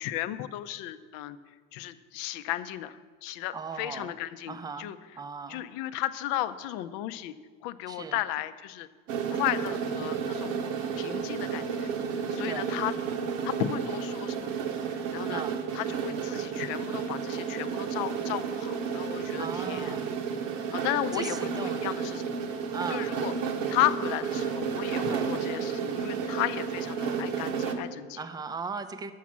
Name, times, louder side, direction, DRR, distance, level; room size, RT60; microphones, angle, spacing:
voice 1, 0.0-1.4 1.7-5.0 5.5-7.3 7.6-8.9 9.3-10.6 10.9-12.9 13.4-14.6 14.9-15.4 15.7-20.1 20.7-22.4 22.9-23.3 23.7-28.2, left 13 dB, 60° left, 13 dB, 0.6 m, -34 dB
voice 2, 3.5-4.2 4.5-5.7 7.9-8.2 12.4-12.7 15.3-15.7 19.4-20.2 20.5-22.1 22.7-23.3 25.1-25.4 28.2-29.1, right 5 dB, 10° right, 10 dB, 0.5 m, -38 dB
sound 1, 9.1-27.7, right 6 dB, 80° right, 1.2 m, -32 dB
7.2 x 6.0 x 7.3 m, 1.5 s
hypercardioid pair, 95°, 38 cm